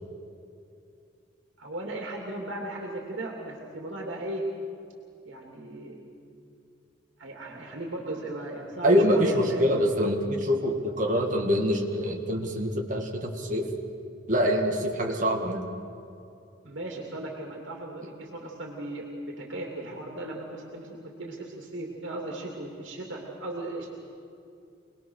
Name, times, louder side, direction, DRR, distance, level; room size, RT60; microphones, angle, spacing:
voice 1, 1.6-4.5 5.2-6.0 7.2-9.7 16.6-23.9, right 2 dB, 80° right, -1 dB, 2.8 m, -36 dB
voice 2, 8.8-13.7 14.3-15.7, equal, 40° right, 0 dB, 2.1 m, -25 dB
25.0 x 20.0 x 6.5 m, 2.5 s
head